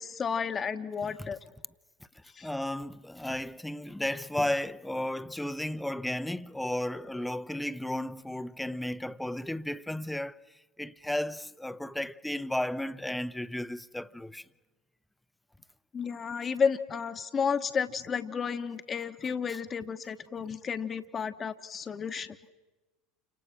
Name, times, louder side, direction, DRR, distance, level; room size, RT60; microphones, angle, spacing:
voice 1, 0.0-1.4 2.3-2.5 15.9-22.4, left 6 dB, 30° left, 1.3 m, -32 dB
voice 2, 2.4-10.4 10.8-14.5, left 1 dB, 5° left, 0.9 m, -34 dB
30.0 x 26.5 x 6.0 m
figure-of-eight pair, 75°, 0 cm